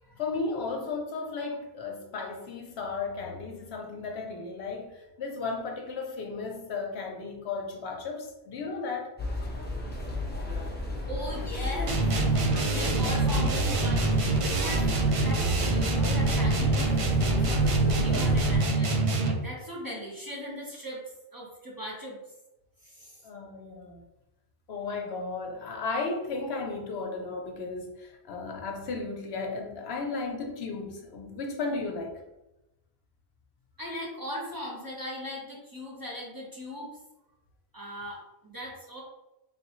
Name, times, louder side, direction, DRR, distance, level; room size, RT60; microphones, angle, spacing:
voice 1, 0.2-9.1 23.2-24.0 24.7-32.1, left 4 dB, 70° left, 2 dB, 0.9 m, -34 dB
sound 1, 9.2-18.6, left 2 dB, 10° left, 0.6 m, -32 dB
voice 2, 11.1-12.1 12.7-21.0 21.3-22.2 22.8-23.2 33.8-36.9 37.7-39.0, left 1 dB, 20° right, -4 dB, 1.0 m, -39 dB
sound 2, 11.9-19.5, right 3 dB, 50° right, 0.4 m, -25 dB
3.7 x 3.3 x 3.0 m, 0.96 s
omnidirectional pair, 1.1 m